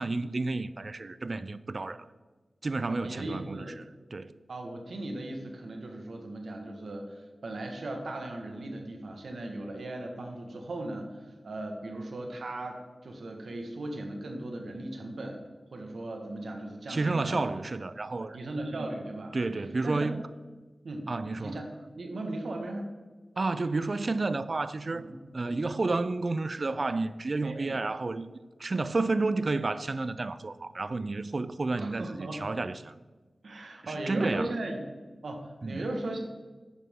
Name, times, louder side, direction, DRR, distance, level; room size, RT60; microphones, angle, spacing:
voice 1, 0.0-2.1 2.6-3.7 4.1-4.3 16.9-18.4 18.8-18.9 19.3-20.2 21.1-21.6 23.4-25.1 25.3-28.3 28.6-32.9 34.1-34.5 35.6-35.8, right 3 dB, 50° right, 0.4 m, -31 dB
voice 2, 2.9-3.7 4.5-17.4 18.2-19.4 19.8-20.1 20.8-21.1 21.4-21.7 21.9-22.9 24.9-25.2 25.5-25.6 27.4-27.8 31.7-32.4 33.4-34.8 35.2-36.2, right 1 dB, 85° right, 1.5 m, -37 dB
11.0 x 9.3 x 3.7 m
wide cardioid pair, 80°, 0 cm